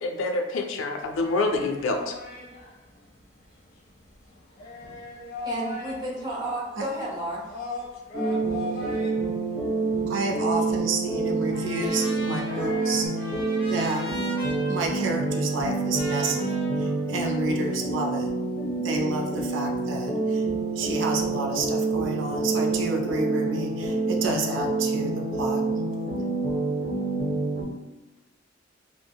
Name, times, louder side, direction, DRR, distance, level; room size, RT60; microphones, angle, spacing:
voice 1, 0.0-2.2, left 3 dB, 80° left, 4 dB, 0.3 m, -26 dB
sound 1, 1.0-13.1, left 2 dB, 50° left, 0.8 m, -40 dB
voice 2, 5.4-7.4, right 1 dB, 20° right, -5 dB, 0.6 m, -31 dB
sound 2, 8.1-27.6, right 3 dB, 50° right, 0.9 m, -27 dB
voice 3, 10.1-14.0 14.7-18.3 18.8-25.6, right 2 dB, 70° right, 1 dB, 0.4 m, -30 dB
Trumpet, 11.5-17.7, equal, 25° left, 0.6 m, -40 dB
3.3 x 2.0 x 2.2 m, 0.99 s
head